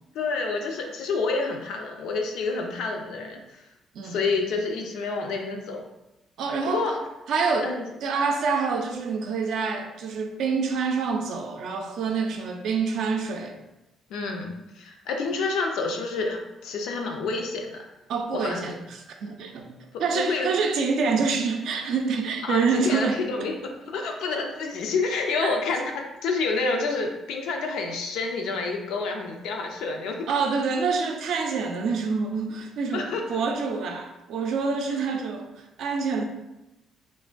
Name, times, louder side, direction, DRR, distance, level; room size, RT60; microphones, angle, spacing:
voice 1, 0.1-3.6 4.0-5.8 6.6-7.0 7.6-7.8 14.1-17.8 18.3-18.7 20.1-20.5 22.4-23.6 23.9-30.3 32.9-33.4, left 4 dB, 85° left, 3 dB, 0.4 m, -28 dB
voice 2, 6.4-6.8 7.3-7.7 8.0-13.5 18.1-19.7 20.0-23.5 25.4-25.5 30.3-36.2, right 5 dB, 75° right, 3 dB, 0.4 m, -27 dB
3.2 x 2.2 x 2.4 m, 0.95 s
cardioid pair, 85°, 0 cm